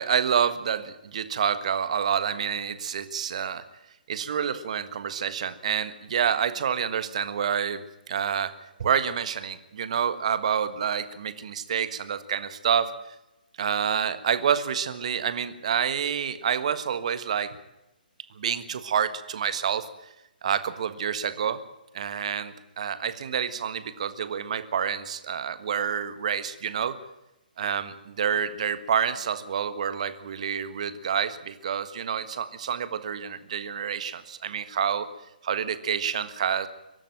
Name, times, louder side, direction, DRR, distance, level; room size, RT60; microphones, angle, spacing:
voice 1, 0.0-3.6 4.1-8.5 8.8-13.1 13.6-17.6 18.3-19.9 20.4-21.6 21.9-27.0 27.6-35.1 35.4-36.7, right 8 dB, 45° right, 12 dB, 1.5 m, -28 dB
23.5 x 12.5 x 9.1 m, 0.95 s
figure-of-eight pair, 135°, 5 cm